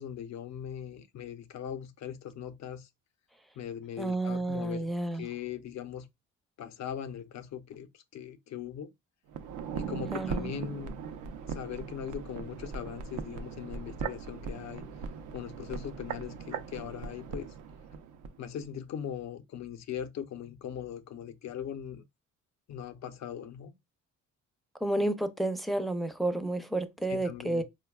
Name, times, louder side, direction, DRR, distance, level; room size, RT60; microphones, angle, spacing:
voice 1, 0.0-2.9 3.6-4.9 5.1-6.1 6.6-8.9 9.7-10.9 11.5-14.9 15.3-17.5 18.4-22.0 22.7-23.7 27.1-27.6, left 9 dB, 65° left, 0.6 m, -40 dB
voice 2, 4.0-5.3 10.1-10.5 24.8-27.6, right 1 dB, ahead, 0.5 m, -31 dB
sound 1, 9.3-18.4 18.6-18.7, right 6 dB, 85° right, 0.6 m, -39 dB
4.5 x 2.2 x 2.2 m
cardioid pair, 90°, 30 cm